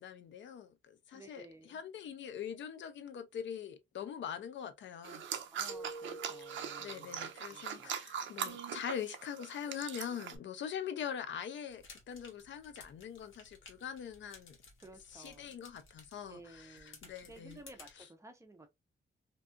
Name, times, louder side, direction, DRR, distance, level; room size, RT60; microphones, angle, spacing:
voice 1, 0.0-5.2 6.4-14.6 15.1-17.6 18.0-18.1, left 8 dB, 70° left, 0.4 m, -43 dB
voice 2, 1.1-1.8 5.5-7.9 14.8-15.5 16.3-18.7, right 2 dB, 15° right, 0.4 m, -55 dB
sound 1, 5.0-10.4, right 8 dB, 75° right, 0.4 m, -41 dB
Keyboard (musical), 5.7-7.7, right 2 dB, 15° left, 0.8 m, -49 dB
sound 2, 11.7-17.9, left 3 dB, 85° left, 0.9 m, -58 dB
2.6 x 2.3 x 2.4 m
wide cardioid pair, 175°, 20 cm